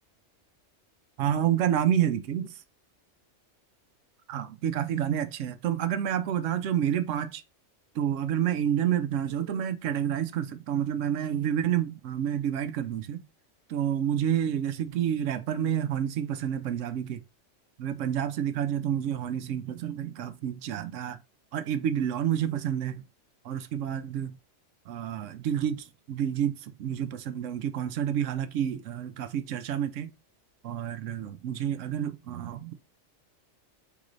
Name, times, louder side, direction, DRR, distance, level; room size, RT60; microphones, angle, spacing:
voice 1, 1.2-2.5 4.3-7.4 8.0-13.2 13.7-17.2 17.8-21.2 21.5-23.0 23.4-24.4 24.9-30.1 30.6-32.7, right 9 dB, 85° right, 1.0 m, -29 dB
3.8 x 3.1 x 3.8 m
omnidirectional pair, 1.3 m